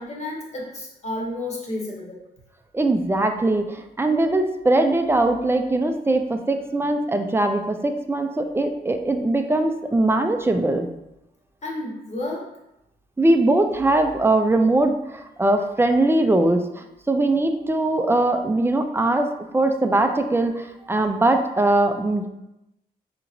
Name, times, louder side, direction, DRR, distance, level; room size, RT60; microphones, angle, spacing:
voice 1, 0.0-2.2 11.6-12.5, left 2 dB, 40° left, -3 dB, 1.3 m, -31 dB
voice 2, 2.7-10.9 13.2-22.3, right 2 dB, 15° right, 6 dB, 0.4 m, -21 dB
4.6 x 2.9 x 2.6 m, 0.90 s
cardioid pair, 70°, 17 cm